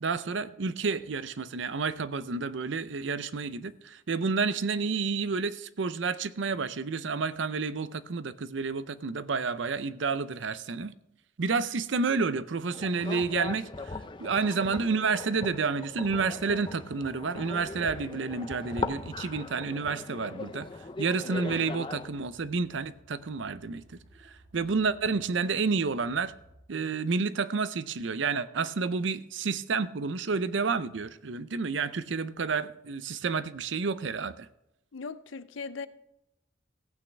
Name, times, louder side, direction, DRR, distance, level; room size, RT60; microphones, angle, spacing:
voice 1, 0.0-10.9 11.4-20.7 21.0-23.8 24.2-26.3 26.7-34.5, right 4 dB, 70° right, 0.6 m, -30 dB
sound 1, 12.7-22.1, left 3 dB, 25° left, 0.5 m, -39 dB
sound 2, 19.0-26.6, equal, 40° right, 2.3 m, -59 dB
voice 2, 34.9-35.9, left 4 dB, 80° left, 0.6 m, -38 dB
16.5 x 8.6 x 3.4 m
head